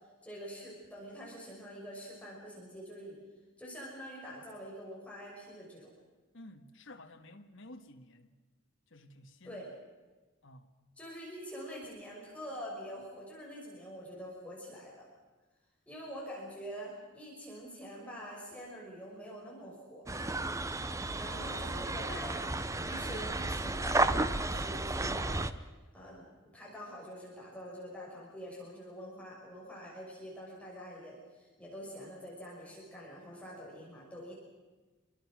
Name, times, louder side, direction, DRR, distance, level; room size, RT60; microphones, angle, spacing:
voice 1, 0.2-3.2 3.6-5.9 9.4-9.7 11.0-15.1 15.9-20.1 21.1-25.4 25.9-34.3, equal, 5° left, 6.0 m, -45 dB
voice 2, 6.3-8.3 8.9-9.7 10.4-10.7, left 1 dB, 60° left, 1.7 m, -52 dB
sound 1, 20.1-25.5, right 2 dB, 15° right, 0.7 m, -33 dB
27.0 x 23.0 x 6.3 m
head